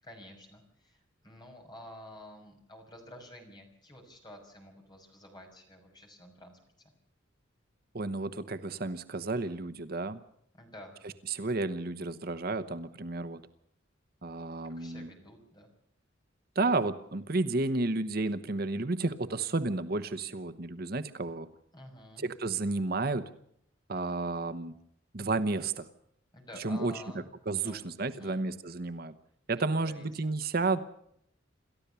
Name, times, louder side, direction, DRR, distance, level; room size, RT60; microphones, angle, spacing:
voice 1, 0.0-1.0 1.2-6.6 10.5-10.9 14.6-15.7 21.7-22.3 26.3-28.4 29.5-30.1, left 1 dB, 20° left, 2 dB, 6.0 m, -50 dB
voice 2, 7.9-10.2 11.0-13.4 14.2-15.1 16.5-21.5 22.2-23.3 23.9-24.7 25.1-25.9 26.6-27.0 27.5-29.1 29.5-30.8, right 3 dB, 50° right, 11 dB, 1.0 m, -32 dB
28.0 x 13.5 x 6.9 m, 0.72 s
head